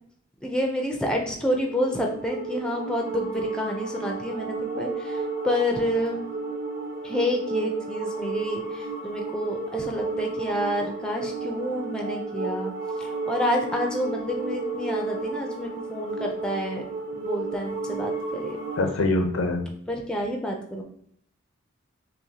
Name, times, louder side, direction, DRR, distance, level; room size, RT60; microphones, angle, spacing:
voice 1, 0.4-6.2 7.0-12.7 13.0-16.9 17.2-18.6 19.9-20.8, equal, 5° left, 1 dB, 0.4 m, -29 dB
sound 1, 1.3-18.9, right 3 dB, 50° right, 1.1 m, -32 dB
voice 2, 18.8-19.6, left 2 dB, 90° left, 5 dB, 0.6 m, -23 dB
5.7 x 2.1 x 2.8 m, 0.65 s
head